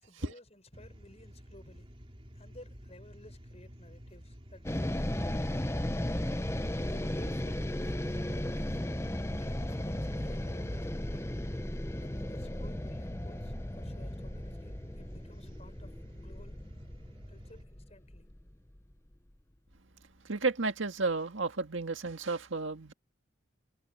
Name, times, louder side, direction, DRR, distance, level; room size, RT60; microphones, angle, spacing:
voice 1, 0.0-1.9 2.3-5.6 6.8-8.8 9.3-11.2 12.0-16.6 17.3-18.3, left 1 dB, 35° left, 6.0 m, -55 dB
sound 1, 0.7-17.6, equal, 30° right, 2.9 m, -52 dB
sound 2, 4.6-18.9, left 1 dB, 15° left, 0.8 m, -35 dB
voice 2, 20.2-22.9, right 3 dB, 80° right, 1.8 m, -32 dB
head